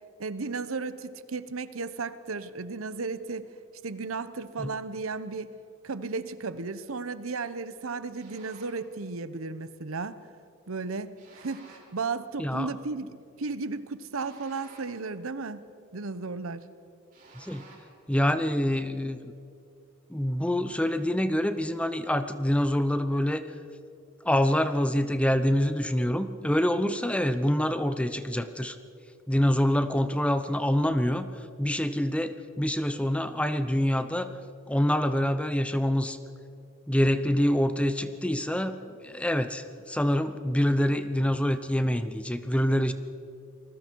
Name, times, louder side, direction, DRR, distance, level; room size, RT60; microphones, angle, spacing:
voice 1, 0.2-3.5 3.8-5.5 5.8-10.2 10.7-15.6 15.9-16.7, right 4 dB, 80° right, 14 dB, 0.9 m, -34 dB
sound 1, 8.2-8.9 11.2-12.0 14.1-15.1 17.1-18.0, right 3 dB, 40° right, 5.0 m, -53 dB
voice 2, 12.4-12.7 17.4-17.6 18.1-19.2 20.1-23.4 24.2-28.8 29.3-31.3 31.6-34.3 34.7-36.2 36.9-38.8 39.0-42.9, equal, 5° left, 10 dB, 0.8 m, -26 dB
28.0 x 20.5 x 4.6 m, 2.5 s
head